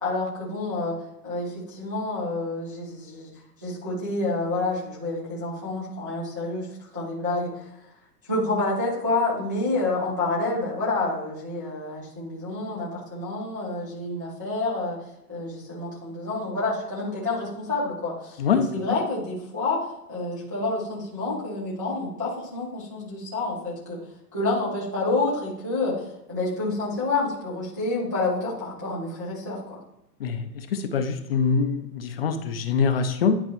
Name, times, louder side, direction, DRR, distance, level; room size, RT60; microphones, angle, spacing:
voice 1, 0.0-0.9 1.2-3.3 3.6-7.7 8.3-15.0 15.3-19.8 20.1-24.0 24.3-29.8, left 2 dB, 15° right, -8 dB, 0.3 m, -28 dB
voice 2, 18.4-19.0 30.2-33.4, left 5 dB, 40° left, 8 dB, 0.5 m, -24 dB
10.0 x 4.0 x 3.0 m, 0.86 s
hypercardioid pair, 155°, 48 cm